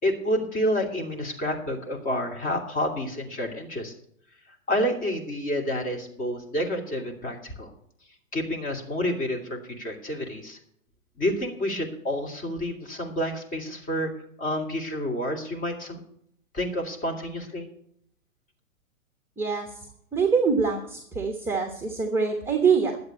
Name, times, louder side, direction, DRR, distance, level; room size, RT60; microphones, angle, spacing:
voice 1, 0.0-3.9 4.7-7.7 8.3-10.6 11.2-14.1 14.4-16.0 16.5-17.7, equal, 20° left, 2 dB, 2.8 m, -29 dB
voice 2, 19.4-19.8 20.1-23.0, right 5 dB, 5° right, 3 dB, 1.2 m, -24 dB
11.5 x 8.1 x 8.3 m, 0.68 s
hypercardioid pair, 130°, 41 cm